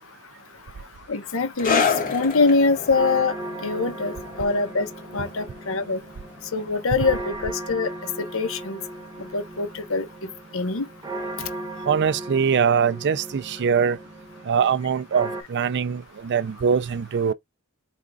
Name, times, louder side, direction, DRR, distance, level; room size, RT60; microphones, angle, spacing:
voice 1, 1.1-1.8 2.1-3.3 3.6-4.9 5.1-6.0 6.5-7.9 8.3-8.8 9.3-10.1 10.5-10.8, left 4 dB, 65° left, 1.0 m, -23 dB
sound 1, 1.6-8.6 8.8-9.1 9.8-9.9, left 5 dB, 40° left, 1.5 m, -30 dB
sound 2, 2.2-15.4, right 2 dB, 20° right, 1.0 m, -37 dB
voice 2, 11.9-14.0 14.5-17.3, right 6 dB, 55° right, 0.4 m, -22 dB
5.1 x 3.5 x 2.3 m
head